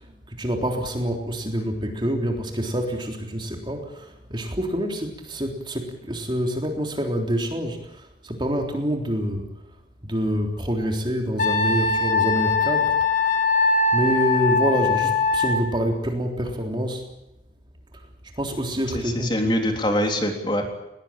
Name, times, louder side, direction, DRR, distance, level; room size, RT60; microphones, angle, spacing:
voice 1, 0.3-9.5 10.0-13.1 13.9-17.0 18.4-19.6, equal, 25° right, 3 dB, 3.7 m, -26 dB
Wind instrument woodwind instrument, 11.4-15.6, left 3 dB, 50° left, 4.1 m, -21 dB
voice 2, 18.9-20.7, equal, 25° left, 3 dB, 3.6 m, -24 dB
20.5 x 20.5 x 9.0 m, 0.88 s
head